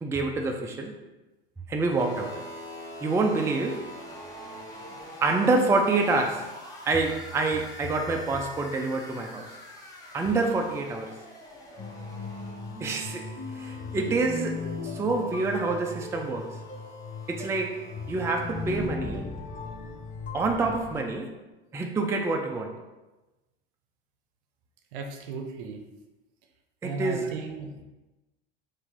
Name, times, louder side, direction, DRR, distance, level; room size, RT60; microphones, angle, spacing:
voice 1, 0.0-1.0 1.7-2.4 3.0-3.9 5.2-6.5 6.8-9.4 10.1-11.1 12.8-13.2 13.6-16.6 17.3-19.3 20.3-21.3 21.7-22.7 26.8-27.3, right 3 dB, 10° right, 2 dB, 0.4 m, -27 dB
sound 1, 1.9-18.9, equal, 10° left, 1.1 m, -45 dB
sound 2, 11.8-21.0, left 3 dB, 25° left, 0.8 m, -37 dB
voice 2, 24.9-25.8 26.8-27.8, right 3 dB, 60° right, 4 dB, 0.7 m, -35 dB
4.5 x 2.7 x 3.7 m, 1.1 s
figure-of-eight pair, 70°, 29 cm